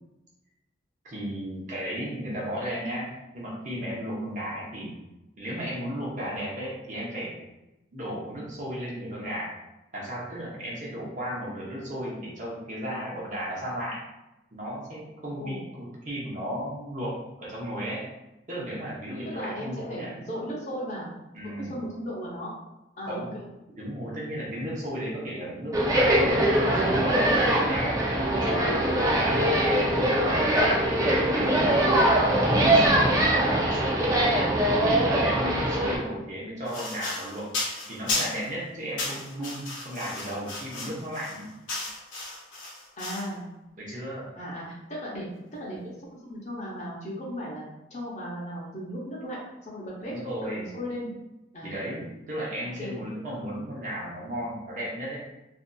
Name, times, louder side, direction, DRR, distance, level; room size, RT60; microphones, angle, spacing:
voice 1, 1.0-5.0 5.4-7.4 7.9-9.5 9.9-14.0 14.5-18.0 18.5-20.1 21.3-21.7 23.0-23.3 23.7-28.0 28.3-33.3 33.7-34.3 34.8-37.5 37.9-41.5 43.8-44.3 50.1-50.7 51.6-55.2, equal, 40° right, -5 dB, 0.7 m, -34 dB
voice 2, 19.2-21.1 21.4-22.5 23.0-23.4 28.1-28.6 34.3-34.5 43.0-43.4 44.4-44.6 44.9-45.3 45.6-47.6 47.9-50.1 50.4-51.1 51.5-51.7 52.8-53.0, equal, 40° left, -5 dB, 0.7 m, -36 dB
sound 1, 25.7-36.0, right 1 dB, 15° right, 0.4 m, -22 dB
sound 2, 36.7-38.5 39.0-43.3, left 2 dB, 80° left, 0.7 m, -34 dB
2.6 x 2.6 x 2.2 m, 0.96 s
head